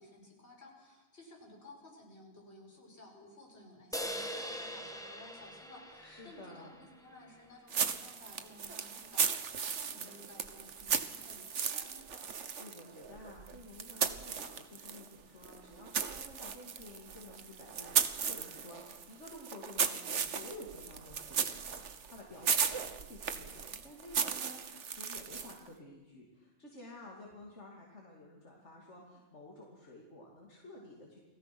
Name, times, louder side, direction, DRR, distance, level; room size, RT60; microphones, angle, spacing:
voice 1, 0.0-12.2, left 1 dB, 65° left, -1 dB, 6.1 m, -56 dB
sound 1, 3.9-7.4, equal, 5° left, 1.6 m, -42 dB
voice 2, 6.0-6.9 12.6-31.2, left 1 dB, 80° left, -1 dB, 3.0 m, -52 dB
sound 2, 7.7-15.1 15.4-25.7, right 6 dB, 85° right, 1.5 m, -36 dB
29.5 x 18.5 x 6.1 m, 1.1 s
omnidirectional pair, 1.2 m